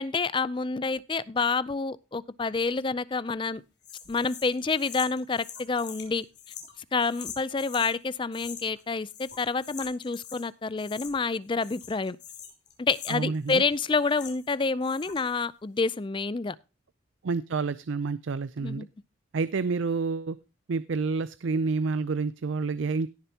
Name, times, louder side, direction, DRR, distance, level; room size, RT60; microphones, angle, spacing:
voice 1, 0.0-3.6 4.1-6.2 6.9-12.2 12.8-16.6 18.6-18.9, left 4 dB, 25° left, 19 dB, 0.4 m, -28 dB
sound 1, 3.8-7.9 8.3-8.8 9.1-10.5 10.8-11.3 11.6-14.5 14.8-15.4, left 8 dB, 60° left, 3.1 m, -44 dB
voice 2, 13.1-13.6 17.2-18.8 19.3-20.4 20.7-23.1, right 4 dB, 75° right, 16 dB, 0.5 m, -29 dB
17.5 x 6.8 x 2.8 m, 0.30 s
head